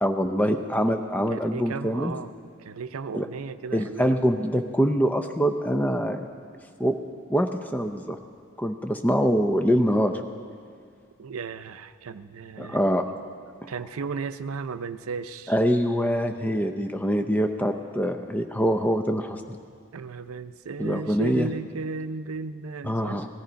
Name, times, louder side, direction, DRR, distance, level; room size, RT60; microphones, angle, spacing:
voice 1, 0.0-2.1 3.1-3.3 3.7-6.3 6.8-6.9 7.3-8.2 8.6-10.2 12.6-13.1 15.5-19.6 20.8-21.5 22.8-23.3, equal, 5° left, 6 dB, 0.5 m, -24 dB
voice 2, 1.3-2.3 2.6-4.2 11.2-12.8 13.7-15.5 19.9-23.2, right 4 dB, 80° right, 12 dB, 0.5 m, -35 dB
18.0 x 14.0 x 5.1 m, 2.1 s
head